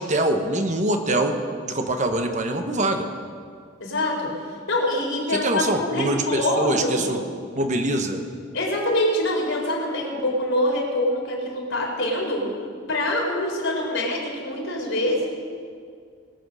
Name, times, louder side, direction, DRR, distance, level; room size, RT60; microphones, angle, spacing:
voice 1, 0.0-1.4 1.6-3.1 5.3-7.2 7.5-8.2, right 1 dB, 40° right, 5 dB, 1.2 m, -24 dB
voice 2, 3.8-4.3 4.7-7.2 8.5-12.4 12.9-15.3, left 1 dB, 85° left, -2 dB, 3.8 m, -25 dB
20.5 x 7.9 x 6.4 m, 2.2 s
head